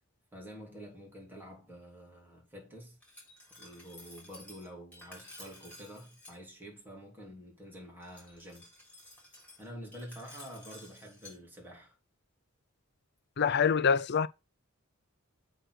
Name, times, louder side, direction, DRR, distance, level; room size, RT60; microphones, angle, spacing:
voice 1, 0.3-3.0 3.5-8.7 9.6-11.9, equal, 10° right, 3.3 m, -48 dB
Glass, 3.0-6.4 8.0-11.4, left 1 dB, 5° left, 4.0 m, -53 dB
voice 2, 13.4-14.3, left 6 dB, 50° left, 0.5 m, -25 dB
7.8 x 4.1 x 6.3 m
head